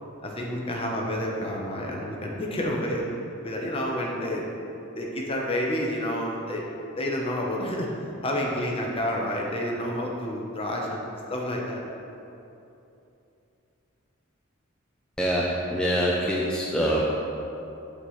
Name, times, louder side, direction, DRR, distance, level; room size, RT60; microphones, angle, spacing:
voice 1, 0.2-3.1 3.4-4.5 5.0-6.6 7.0-7.9 8.2-11.8, left 1 dB, 25° left, -1 dB, 0.9 m, -29 dB
voice 2, 15.2-17.1, equal, 5° left, -5 dB, 0.5 m, -25 dB
7.4 x 6.4 x 3.2 m, 2.8 s
head